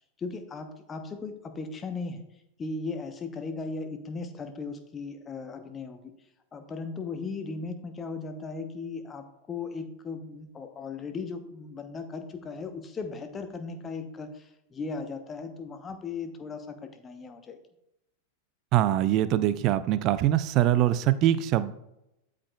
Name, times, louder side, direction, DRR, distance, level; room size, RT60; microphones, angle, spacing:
voice 1, 0.2-2.2 2.6-6.1 6.5-17.6, left 4 dB, 20° left, 8 dB, 0.9 m, -37 dB
voice 2, 18.7-21.7, right 12 dB, 40° right, 14 dB, 0.4 m, -23 dB
12.5 x 4.9 x 2.3 m, 0.86 s
figure-of-eight pair, 90°, 0 cm